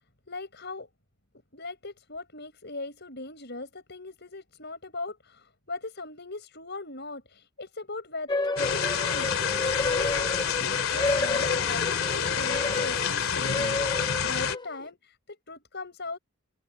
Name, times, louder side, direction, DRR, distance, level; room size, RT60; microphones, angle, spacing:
voice 1, 0.3-0.9 1.5-9.3 9.6-16.2, left 3 dB, 50° left, 7.6 m, -40 dB
sound 1, 8.3-14.8, left 3 dB, 20° left, 0.8 m, -31 dB
sound 2, 8.6-14.6, left 7 dB, 70° left, 2.9 m, -28 dB
open air
head